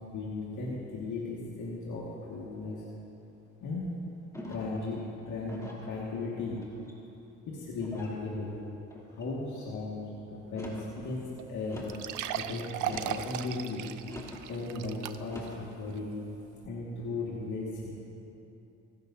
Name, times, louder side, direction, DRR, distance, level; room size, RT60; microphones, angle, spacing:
voice 1, 0.1-2.8 3.6-4.0 4.5-6.6 7.5-8.6 9.1-10.0 10.3-11.8 12.3-13.9 14.5-16.1 16.6-18.1, left 3 dB, 75° left, -6 dB, 2.1 m, -36 dB
sound 1, 4.3-4.8 5.5-5.9 6.6-7.1 7.8-8.2 8.9-9.3 10.4-10.9 11.7-12.1 12.8-13.3 14.1-14.4 15.2-15.6, left 1 dB, 10° left, 3.1 m, -44 dB
sound 2, 11.0-11.1 11.4-11.5 11.9-15.5 15.9-16.0 16.6-16.7, right 10 dB, 85° right, 0.6 m, -37 dB
25.5 x 12.0 x 2.8 m, 2.9 s
cardioid pair, 90°, 30 cm